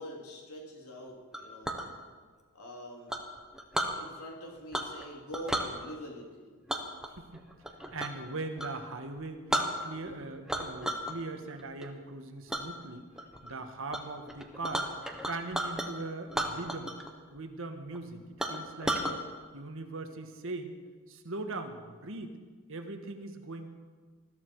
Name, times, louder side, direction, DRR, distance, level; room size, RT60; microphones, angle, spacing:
voice 1, 0.0-1.8 2.5-3.2 3.9-6.6, equal, 85° left, -1 dB, 3.5 m, -44 dB
Chink clink, 1.3-1.9 3.1-4.0 4.7-5.0 5.3-5.7 6.7-8.2 8.6-8.8 9.2-9.3 9.5-10.1 10.5-11.1 11.5-11.9 12.5-12.6 13.2-13.5 13.9-14.0 14.3-15.9 16.3-17.1 17.4-17.5 17.9-18.0 18.4-19.1, right 1 dB, 5° right, 1.3 m, -33 dB
voice 2, 7.2-7.5 7.9-9.4 9.8-13.1 13.4-15.0 15.3-16.9 17.3-19.3 19.5-20.8 21.1-22.3 22.7-23.7, right 2 dB, 65° right, 6 dB, 1.5 m, -40 dB
20.5 x 14.0 x 4.8 m, 1.5 s
head